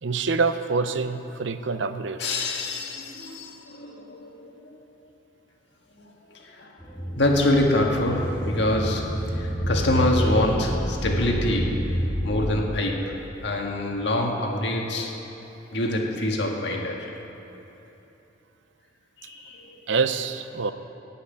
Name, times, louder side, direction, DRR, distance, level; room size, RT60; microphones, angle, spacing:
voice 1, 0.0-2.4 19.9-20.7, right 4 dB, 70° right, 11 dB, 0.6 m, -26 dB
voice 2, 2.2-4.8 6.0-6.8 7.2-15.2 15.7-17.2 19.2-19.8, left 1 dB, 65° left, 0 dB, 1.8 m, -26 dB
sound 1, 6.8-12.4, equal, 10° left, 2.1 m, -28 dB
17.0 x 5.9 x 9.4 m, 3.0 s
head